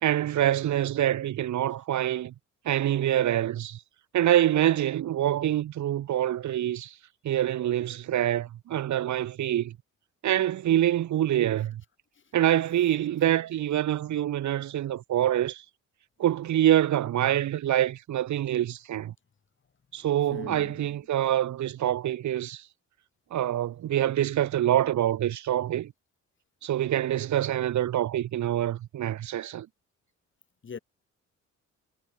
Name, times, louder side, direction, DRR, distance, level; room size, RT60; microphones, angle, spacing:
voice 1, 0.0-2.3 2.7-3.8 4.1-6.9 7.2-9.7 10.2-11.8 12.3-15.6 16.2-19.1 19.9-22.6 23.3-25.9 26.6-29.7, right 12 dB, 70° right, 2.2 m, -25 dB
voice 2, 20.3-20.9 30.6-30.8, left 6 dB, 40° left, 5.5 m, -40 dB
cardioid pair, 90°, 30 cm